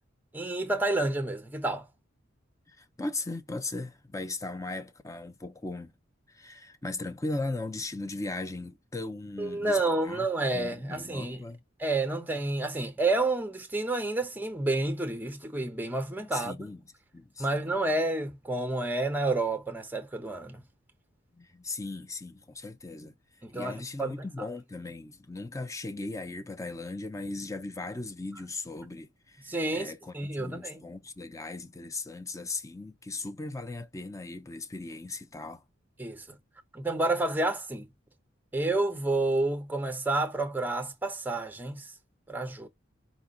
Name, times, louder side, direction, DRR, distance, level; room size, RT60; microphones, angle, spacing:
voice 1, 0.3-1.9 9.4-11.4 11.8-16.6 17.4-20.6 23.4-24.1 29.4-30.8 36.0-36.2 36.7-37.9 38.5-41.9 42.3-42.7, right 2 dB, 10° right, 0.8 m, -29 dB
voice 2, 2.7-5.9 6.3-10.3 10.5-11.6 16.3-16.8 17.1-17.6 21.3-23.2 23.5-35.6, left 2 dB, 15° left, 0.6 m, -38 dB
5.1 x 2.4 x 3.8 m
head